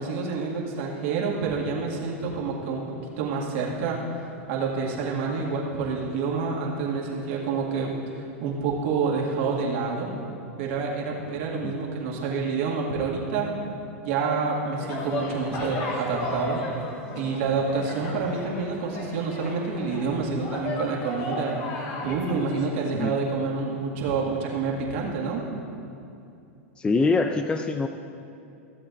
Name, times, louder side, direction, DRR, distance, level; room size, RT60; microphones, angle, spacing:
voice 1, 0.0-2.8 3.2-10.1 10.6-13.5 14.0-16.6 17.2-21.5 22.0-25.4, right 4 dB, 60° right, -3 dB, 2.0 m, -28 dB
sound 1, 14.7-22.8, left 2 dB, 50° left, 1.8 m, -34 dB
voice 2, 26.8-27.9, left 3 dB, 15° left, 7 dB, 0.4 m, -24 dB
15.5 x 7.6 x 2.6 m, 2.7 s
hypercardioid pair, 110°, 7 cm